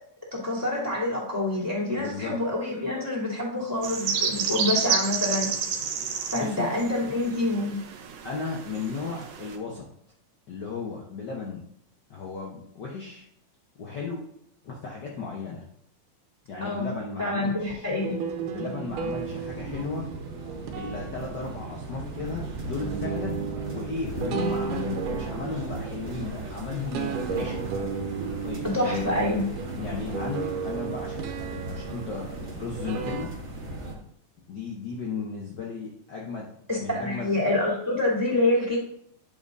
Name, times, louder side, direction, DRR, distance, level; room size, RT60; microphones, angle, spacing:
voice 1, 0.3-5.5 6.3-7.8 16.6-16.9 17.2-18.2 28.6-29.4 36.7-38.8, left 2 dB, 5° right, -8 dB, 2.9 m, -27 dB
voice 2, 2.0-2.4 6.3-6.7 8.2-9.8 10.5-11.6 12.1-13.2 13.8-14.2 14.6-15.7 16.5-17.9 18.5-20.1 20.7-23.5 23.7-27.8 28.2-29.0 29.7-33.3 34.5-36.5 36.8-37.3, left 4 dB, 65° left, -3 dB, 1.1 m, -35 dB
sound 1, 3.8-9.6, right 6 dB, 65° right, 1.8 m, -30 dB
sound 2, 18.0-33.3, right 6 dB, 90° right, 2.5 m, -34 dB
sound 3, 18.9-33.9, right 2 dB, 40° right, 0.9 m, -38 dB
11.0 x 8.1 x 2.7 m, 0.70 s
omnidirectional pair, 3.5 m